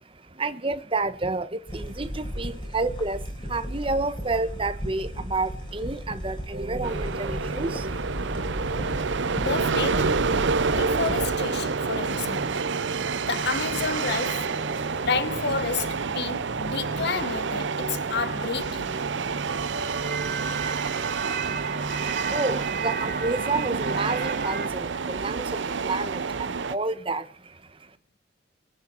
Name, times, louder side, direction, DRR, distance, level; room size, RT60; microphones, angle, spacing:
voice 1, 0.0-8.1 21.6-27.9, right 3 dB, 30° right, 1.1 m, -30 dB
sound 1, 1.7-11.4, equal, 25° left, 4.1 m, -35 dB
sound 2, 6.5-24.7, right 3 dB, 50° right, 1.4 m, -35 dB
sound 3, 6.8-26.7, right 5 dB, 70° right, 0.6 m, -29 dB
voice 2, 9.2-10.3 10.7-12.7 13.2-14.5 14.8-19.0, left 5 dB, 60° left, 0.9 m, -30 dB
26.0 x 9.1 x 4.5 m
head